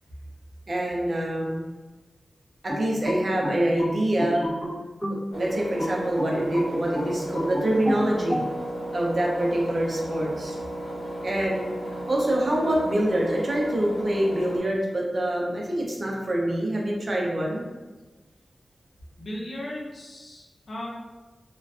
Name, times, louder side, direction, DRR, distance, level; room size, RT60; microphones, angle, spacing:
voice 1, 0.7-1.6 2.6-4.4 5.1-8.4 8.9-10.6 11.2-17.6, right 1 dB, 50° right, -2 dB, 0.5 m, -25 dB
sound 1, 2.7-5.3 5.8-8.5, equal, 25° left, 0.8 m, -30 dB
Engine, 5.3-14.6, right 1 dB, 5° right, 1.0 m, -34 dB
voice 2, 19.2-20.9, left 1 dB, 65° left, -4 dB, 0.6 m, -36 dB
2.3 x 2.2 x 2.3 m, 1.2 s
wide cardioid pair, 85°, 0 cm